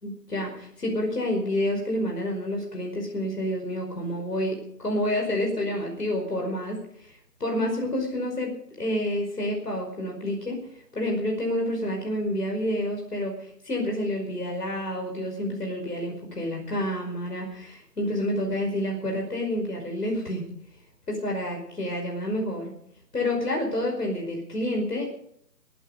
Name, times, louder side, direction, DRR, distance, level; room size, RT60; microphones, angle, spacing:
voice 1, 0.0-7.1 7.4-10.6 10.9-20.4 21.1-22.7 23.1-25.1, left 1 dB, 65° left, 1 dB, 5.3 m, -29 dB
22.0 x 11.5 x 5.3 m, 0.70 s
figure-of-eight pair, 155°, 50 cm